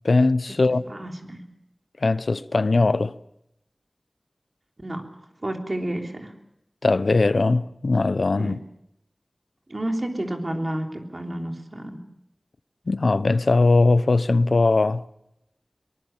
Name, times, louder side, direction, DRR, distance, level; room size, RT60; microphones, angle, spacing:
voice 1, 0.0-0.8 2.0-3.1 6.8-8.6 12.9-15.0, left 3 dB, 85° left, 0.7 m, -20 dB
voice 2, 0.9-1.5 4.8-5.1 5.4-6.3 8.4-8.6 9.7-12.0, right 1 dB, 45° right, 3.4 m, -30 dB
23.5 x 19.5 x 7.2 m
wide cardioid pair, 60°, 0 cm